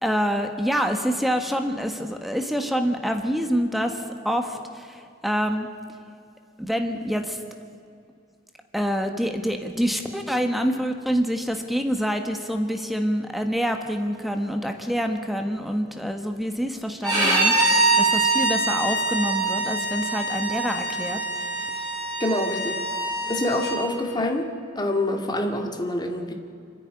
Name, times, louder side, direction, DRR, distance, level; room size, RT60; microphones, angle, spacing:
voice 1, 0.0-5.7 6.6-7.4 8.7-21.8, equal, ahead, 5 dB, 1.4 m, -26 dB
Bowed string instrument, 17.0-23.8, right 2 dB, 20° right, 7.1 m, -24 dB
voice 2, 22.2-22.8 23.3-24.5 24.8-26.3, left 1 dB, 20° left, 3 dB, 2.1 m, -26 dB
27.5 x 10.0 x 9.8 m, 2.4 s
head